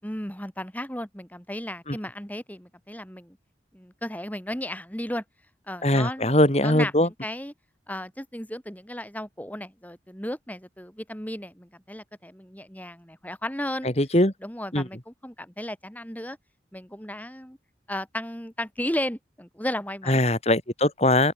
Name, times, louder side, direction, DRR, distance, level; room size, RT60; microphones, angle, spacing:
voice 1, 0.0-3.4 3.7-5.2 5.7-7.5 7.9-13.9 14.4-16.4 16.7-17.6 17.9-20.2, left 1 dB, 10° left, 7.3 m, -34 dB
voice 2, 5.8-7.1 14.0-14.3 14.7-14.9 20.1-21.3, left 1 dB, 35° left, 3.8 m, -21 dB
open air
head